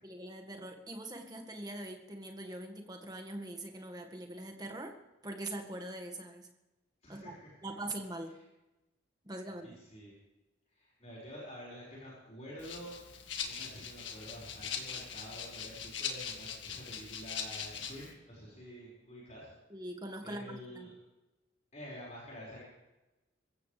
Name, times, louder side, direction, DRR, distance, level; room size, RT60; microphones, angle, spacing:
voice 1, 0.0-4.9 5.2-6.5 7.1-7.4 7.6-8.3 9.2-9.8 19.7-20.9, right 1 dB, 20° right, 3 dB, 1.8 m, -42 dB
voice 2, 7.0-7.3 9.6-10.1 10.7-12.9 13.4-19.5 20.2-20.9 21.7-22.6, equal, 35° left, -6 dB, 5.4 m, -48 dB
Rattle (instrument), 12.6-18.1, left 7 dB, 70° left, 2.0 m, -41 dB
25.0 x 15.0 x 3.4 m, 1.0 s
head